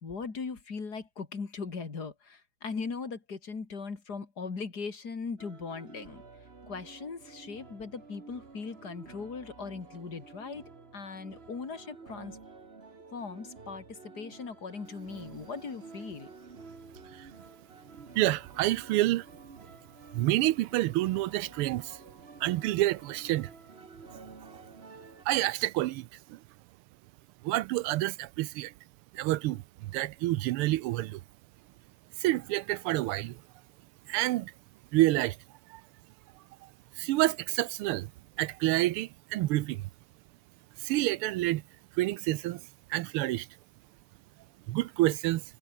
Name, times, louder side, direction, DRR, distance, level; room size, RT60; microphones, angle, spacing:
voice 1, 0.0-6.2 6.7-10.6 10.9-12.4 13.1-16.3, left 5 dB, 45° left, 3.3 m, -39 dB
sound 1, 5.4-25.3, right 4 dB, 30° right, 2.1 m, -51 dB
voice 2, 18.1-19.2 20.1-22.0 22.4-23.5 25.3-26.4 27.4-28.7 29.1-31.2 32.2-33.4 34.1-34.5 34.9-35.4 35.7-35.8 37.0-38.1 38.4-39.8 40.8-41.6 42.0-42.6 42.9-43.5 44.7-45.4, right 17 dB, 90° right, 1.5 m, -28 dB
omnidirectional pair, 2.4 m